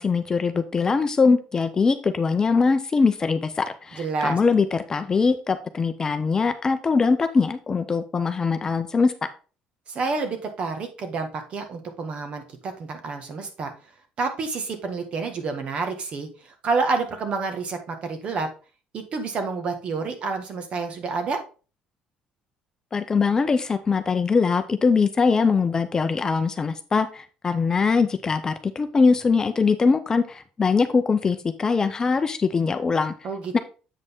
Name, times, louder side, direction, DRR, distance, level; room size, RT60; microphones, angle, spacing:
voice 1, 0.0-9.1 22.9-33.1 33.5-33.6, left 4 dB, 25° left, 9 dB, 0.6 m, -22 dB
voice 2, 4.0-4.4 9.9-13.7 14.2-18.5 18.9-21.4 33.2-33.6, right 4 dB, 45° right, 6 dB, 1.6 m, -29 dB
7.8 x 5.2 x 3.6 m, 0.35 s
cardioid pair, 125°, 3 cm